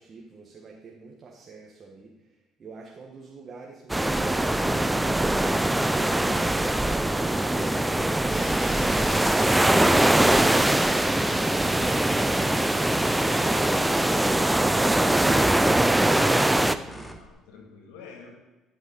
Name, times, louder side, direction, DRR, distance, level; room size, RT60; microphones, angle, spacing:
voice 1, 0.0-10.2 10.9-12.2 12.8-17.2, right 4 dB, 45° right, -1 dB, 1.7 m, -43 dB
sound 1, 3.9-16.7, right 1 dB, 10° right, 0.6 m, -22 dB
Fire, 8.3-14.3, left 2 dB, 45° left, 3.2 m, -40 dB
sound 2, 12.3-17.3, right 1 dB, 5° left, 1.2 m, -43 dB
voice 2, 16.9-18.3, left 5 dB, 80° left, 2 dB, 2.2 m, -48 dB
12.0 x 5.4 x 5.4 m, 1.1 s
hypercardioid pair, 60°, 0 cm